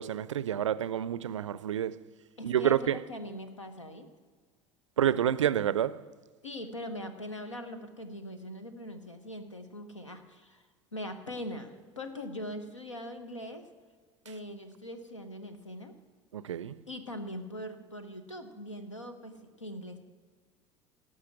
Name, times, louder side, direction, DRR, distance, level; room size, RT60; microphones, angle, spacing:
voice 1, 0.0-2.1 2.4-3.0 5.0-6.1 16.3-16.8, right 10 dB, 80° right, 0.4 m, -29 dB
voice 2, 2.4-4.1 6.4-10.6 10.9-13.6 14.2-15.9 16.9-20.0, left 1 dB, 90° left, 1.0 m, -41 dB
17.5 x 6.3 x 6.0 m
figure-of-eight pair, 70°, 15 cm